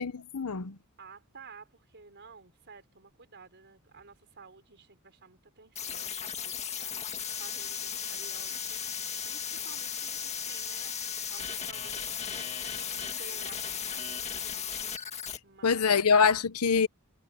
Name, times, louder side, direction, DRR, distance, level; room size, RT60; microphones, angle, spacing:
voice 1, 0.0-0.8 15.6-16.9, left 5 dB, 80° left, 0.9 m, -24 dB
voice 2, 1.0-7.1 7.4-9.0 9.2-10.9 11.3-12.9 13.2-14.6 15.4-16.0, right 5 dB, 50° right, 4.6 m, -53 dB
sound 1, 5.8-15.4, left 8 dB, 30° left, 1.9 m, -36 dB
head